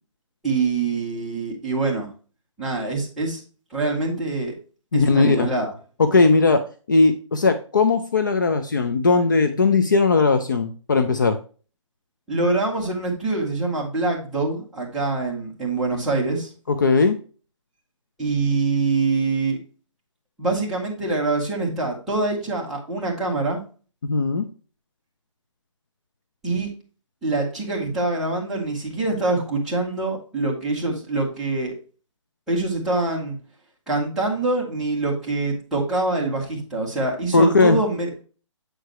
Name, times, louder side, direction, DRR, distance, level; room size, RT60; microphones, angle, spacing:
voice 1, 0.4-2.1 2.6-3.4 3.7-4.6 4.9-5.7 12.3-16.5 18.2-19.6 20.4-23.6 26.4-26.7 27.2-31.7 32.5-33.4 33.9-38.1, right 3 dB, ahead, -9 dB, 1.1 m, -24 dB
voice 2, 4.9-5.5 6.0-6.6 6.9-11.4 16.7-17.2 24.0-24.5 37.3-37.8, left 3 dB, 40° left, 7 dB, 0.5 m, -18 dB
7.9 x 4.8 x 3.1 m, 0.38 s
hypercardioid pair, 180°, 17 cm